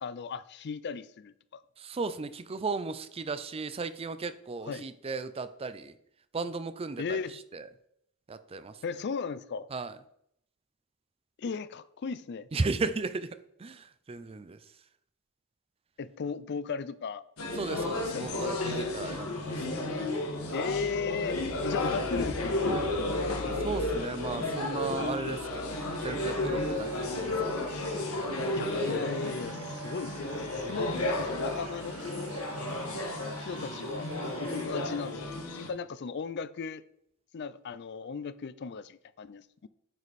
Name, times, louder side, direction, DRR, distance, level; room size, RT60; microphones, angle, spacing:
voice 1, 0.0-1.6 4.7-4.9 7.0-7.4 8.8-9.7 11.4-12.5 16.0-17.2 18.1-18.5 20.5-23.3 28.5-32.0 33.4-34.1 34.4-35.2 35.5-36.8 37.3-39.7, left 5 dB, 50° left, 0.4 m, -36 dB
voice 2, 1.8-5.9 6.3-7.2 7.5-7.6 8.3-8.7 9.7-9.9 12.5-13.3 13.6-14.6 17.6-19.8 23.6-25.7 26.0-27.3 27.6-27.7 30.6-31.0, right 3 dB, 25° right, 0.4 m, -35 dB
sound 1, 17.4-35.7, left 2 dB, 85° left, 1.6 m, -32 dB
sound 2, 25.7-34.7, right 4 dB, 75° right, 1.0 m, -47 dB
9.3 x 5.0 x 4.1 m
head